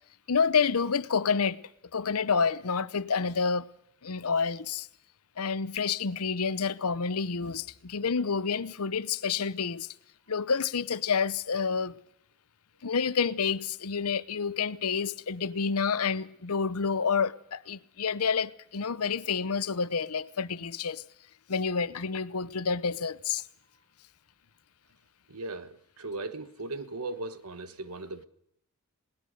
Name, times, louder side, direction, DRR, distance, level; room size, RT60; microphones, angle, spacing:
voice 1, 0.3-1.6 1.9-3.7 4.0-4.9 5.4-9.9 10.3-11.9 12.8-21.0 21.5-23.4, left 5 dB, 80° left, 0.8 m, -29 dB
voice 2, 25.3-28.2, right 2 dB, 90° right, 1.3 m, -38 dB
20.5 x 19.5 x 6.7 m
head